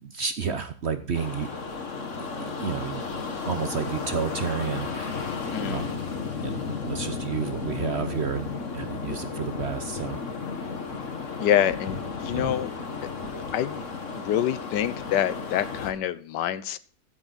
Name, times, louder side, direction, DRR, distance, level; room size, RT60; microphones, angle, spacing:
voice 1, 0.0-1.5 2.2-3.0 3.5-5.2 5.7-6.0 6.4-10.2 12.3-12.5, right 6 dB, 50° right, 9 dB, 0.9 m, -31 dB
sound 1, 1.1-15.9, left 4 dB, 45° left, 1.8 m, -33 dB
voice 2, 5.5-6.0 11.4-12.7 13.5-13.9 14.2-16.8, left 10 dB, 85° left, 16 dB, 1.4 m, -26 dB
15.0 x 8.1 x 4.1 m, 0.43 s
omnidirectional pair, 1.8 m